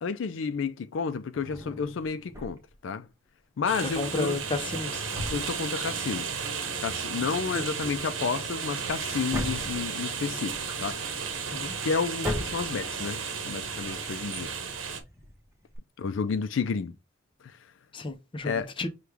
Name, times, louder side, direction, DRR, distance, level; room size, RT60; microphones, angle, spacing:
voice 1, 0.0-3.1 3.6-4.4 5.3-6.3 6.8-11.0 11.8-14.5 16.0-16.9 18.4-18.7, left 5 dB, 70° left, 0.4 m, -31 dB
Drawer open or close, 1.3-2.8 3.7-6.2 6.4-6.5 7.0-15.8, left 1 dB, 15° right, 0.9 m, -40 dB
sound 1, 3.7-15.0, right 6 dB, 85° right, 0.8 m, -34 dB
voice 2, 4.0-5.0 7.5-7.6 11.5-11.7 17.9-18.9, left 3 dB, 25° left, 0.6 m, -32 dB
6.1 x 2.3 x 3.4 m
head